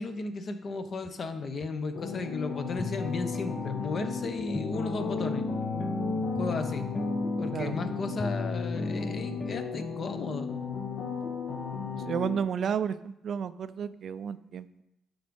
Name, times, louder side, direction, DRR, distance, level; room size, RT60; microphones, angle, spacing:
voice 1, 0.0-5.4 6.4-6.9 7.4-10.5, left 3 dB, 50° left, 8 dB, 1.0 m, -35 dB
sound 1, 1.0-1.1 1.6-1.7 2.1-2.2 2.8-9.6, left 2 dB, 10° left, 0.5 m, -36 dB
sound 2, 1.9-12.4, left 5 dB, 65° left, 1.3 m, -34 dB
voice 2, 11.9-14.8, right 7 dB, 60° right, 14 dB, 0.4 m, -32 dB
10.5 x 4.0 x 5.3 m, 0.84 s
cardioid pair, 90°, 0 cm